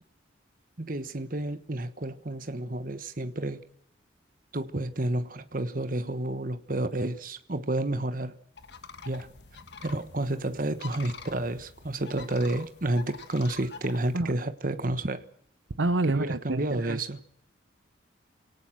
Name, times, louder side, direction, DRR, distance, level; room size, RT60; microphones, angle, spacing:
voice 1, 0.8-3.6 4.5-8.3 9.0-9.3 9.8-15.2 16.1-17.2, right 1 dB, 45° right, 1.3 m, -30 dB
sound 1, 8.6-14.2, left 5 dB, 60° left, 1.4 m, -46 dB
voice 2, 15.7-17.0, right 2 dB, 80° right, 0.9 m, -28 dB
28.0 x 18.0 x 6.1 m
head